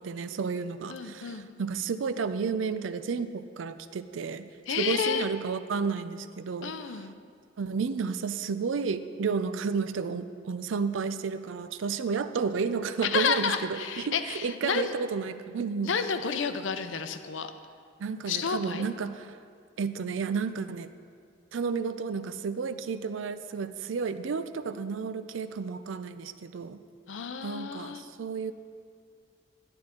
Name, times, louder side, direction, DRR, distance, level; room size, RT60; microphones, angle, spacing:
voice 1, 0.0-4.5 4.8-6.7 7.6-15.9 18.0-19.4 19.8-20.9 21.5-26.8 27.4-28.5, right 5 dB, 85° right, 12 dB, 0.4 m, -32 dB
voice 2, 0.9-1.5 4.7-5.2 6.6-7.1 13.0-14.9 15.8-17.5 18.3-18.9 27.1-28.0, left 6 dB, 80° left, 9 dB, 0.6 m, -30 dB
11.5 x 8.8 x 3.7 m, 2.2 s
head